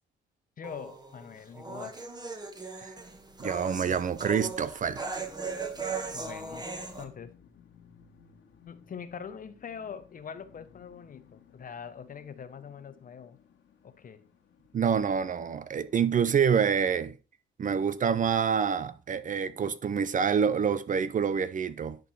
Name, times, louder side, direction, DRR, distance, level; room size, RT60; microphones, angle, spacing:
voice 1, 0.6-2.2 6.1-6.7 7.0-7.4 8.7-13.4 13.8-14.2, left 7 dB, 45° left, 0.9 m, -43 dB
sound 1, 0.6-7.0, right 4 dB, 20° right, 1.5 m, -38 dB
voice 2, 3.4-5.0 14.7-17.1 17.6-22.1, right 7 dB, 40° right, 0.6 m, -27 dB
sound 2, 3.7-16.1, left 7 dB, 75° left, 2.2 m, -59 dB
10.5 x 4.0 x 4.2 m
cardioid pair, 90°, 20 cm